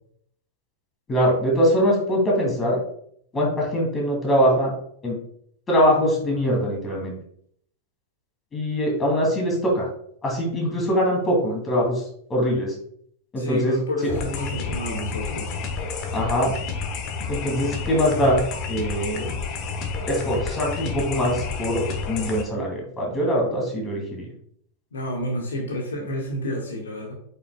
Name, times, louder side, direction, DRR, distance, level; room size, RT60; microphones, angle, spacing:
voice 1, 1.1-2.8 3.3-4.7 5.0-5.1 5.7-7.1 8.5-9.9 10.2-12.0 12.3-12.7 13.3-13.8 16.1-16.5 17.3-18.4 18.7-19.3 20.1-24.3, equal, 20° left, -1 dB, 2.6 m, -22 dB
voice 2, 13.4-15.6 24.9-27.1, left 1 dB, 70° left, 0 dB, 1.5 m, -30 dB
sound 1, 14.1-22.4, left 4 dB, 40° left, 1.1 m, -30 dB
8.4 x 5.7 x 2.3 m, 0.67 s
figure-of-eight pair, 90°, 0 cm